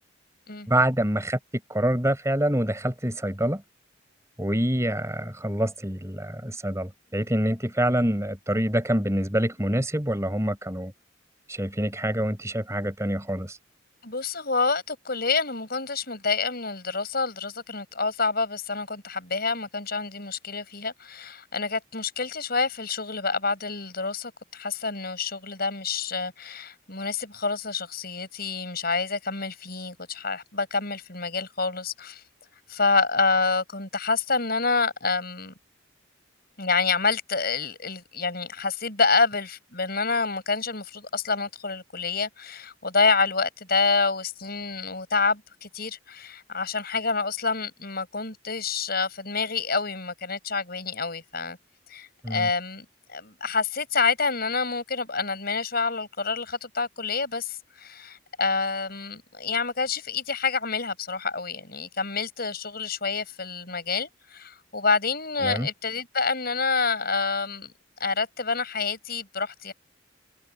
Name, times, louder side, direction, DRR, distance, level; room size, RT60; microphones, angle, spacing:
voice 1, 0.7-1.4 1.7-3.6 4.4-10.9 11.5-13.6 52.2-52.5 65.4-65.7, right 1 dB, 15° right, 4.7 m, -26 dB
voice 2, 14.0-32.2 32.7-35.5 36.6-51.6 51.9-67.7 68.0-69.7, left 4 dB, 50° left, 7.4 m, -27 dB
head